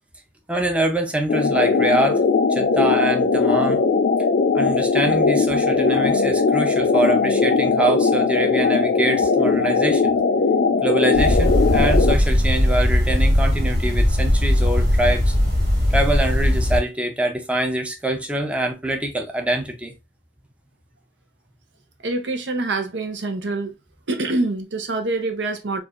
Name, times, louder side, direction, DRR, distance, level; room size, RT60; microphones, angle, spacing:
voice 1, 0.5-2.2 2.5-3.8 4.5-10.2 10.8-15.3 15.9-19.9, right 1 dB, 5° right, 0.5 m, -24 dB
sound 1, 1.3-12.1, left 4 dB, 60° left, 0.4 m, -19 dB
sound 2, 11.1-16.8, left 1 dB, 65° right, 2.2 m, -19 dB
voice 2, 22.0-23.7 24.1-25.8, right 2 dB, 85° right, 0.7 m, -25 dB
4.6 x 2.4 x 2.4 m
head